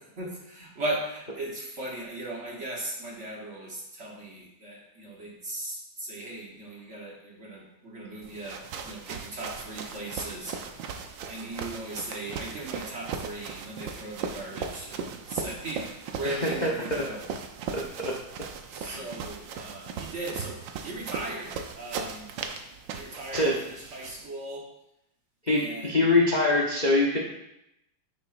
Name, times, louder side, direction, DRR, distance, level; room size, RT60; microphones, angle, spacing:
voice 1, 0.2-10.7 11.3-17.3 18.7-22.3 22.9-24.7 25.5-26.0, right 2 dB, 40° right, -2 dB, 1.3 m, -38 dB
sound 1, 8.2-24.2, right 6 dB, 75° right, 1.4 m, -38 dB
voice 2, 16.2-17.0 17.7-18.1 18.8-19.0 23.3-23.6 25.4-27.2, left 2 dB, 35° left, -2 dB, 0.7 m, -24 dB
9.5 x 6.9 x 2.5 m, 0.83 s
omnidirectional pair, 2.1 m